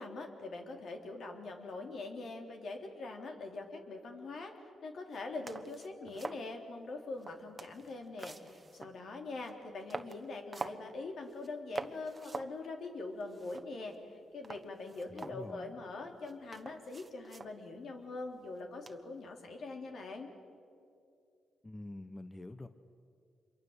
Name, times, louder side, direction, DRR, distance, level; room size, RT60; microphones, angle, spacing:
voice 1, 0.0-20.3, left 3 dB, 65° left, 4 dB, 3.4 m, -43 dB
sound 1, 5.1-5.2 5.5-6.5 7.1-9.0 9.4-9.5 9.9-10.9 11.3-11.5 11.8-12.6 12.9-13.0 13.2-14.0 14.4-15.8 16.2-17.6 18.9-19.2, right 3 dB, 30° right, 1.2 m, -45 dB
voice 2, 15.1-15.8 21.6-22.7, left 2 dB, 20° left, 10 dB, 1.1 m, -47 dB
27.0 x 23.5 x 8.1 m, 2.5 s
cardioid pair, 75°, 0 cm